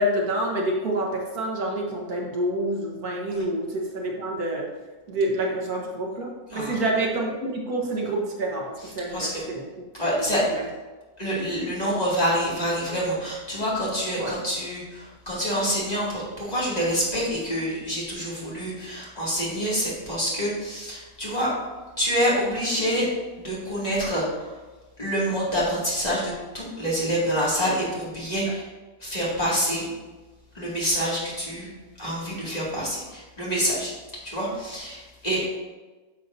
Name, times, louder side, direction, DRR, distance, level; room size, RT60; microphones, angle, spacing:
voice 1, 0.0-4.7 5.1-8.7 8.9-9.9 10.2-10.7 14.2-14.3, right 1 dB, 75° right, -1 dB, 1.8 m, -27 dB
voice 2, 9.1-9.4 10.0-10.4 11.2-21.5 22.0-23.1 23.4-24.2 25.0-28.6 29.0-29.9 30.5-31.7 32.0-33.9 34.2-35.5, equal, 25° left, -7 dB, 2.4 m, -26 dB
10.0 x 6.7 x 2.7 m, 1.2 s
omnidirectional pair, 1.6 m